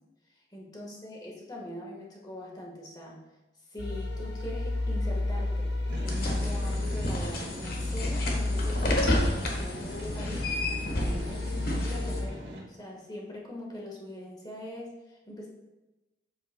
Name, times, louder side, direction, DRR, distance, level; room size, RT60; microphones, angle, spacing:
voice 1, 0.5-3.2 3.7-9.2 9.5-10.5 11.0-15.5, left 1 dB, 20° left, -2 dB, 1.4 m, -42 dB
sound 1, 3.8-12.3, left 2 dB, 70° left, 0.8 m, -32 dB
sound 2, 5.9-12.6, equal, 70° right, 1.9 m, -42 dB
sound 3, 6.1-12.2, left 1 dB, 55° left, 1.3 m, -32 dB
8.0 x 7.8 x 2.2 m, 1.0 s
head